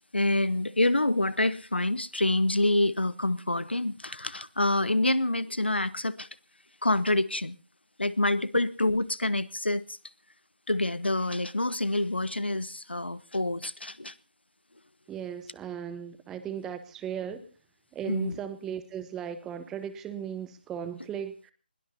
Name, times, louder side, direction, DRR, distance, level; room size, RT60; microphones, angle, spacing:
voice 1, 0.1-6.3 6.8-7.6 8.0-10.0 10.7-14.1 18.1-18.4, left 2 dB, 85° left, 1.0 m, -27 dB
voice 2, 15.1-17.4 17.9-21.5, right 8 dB, 5° right, 0.8 m, -37 dB
23.0 x 20.5 x 2.8 m
figure-of-eight pair, 155°, 6 cm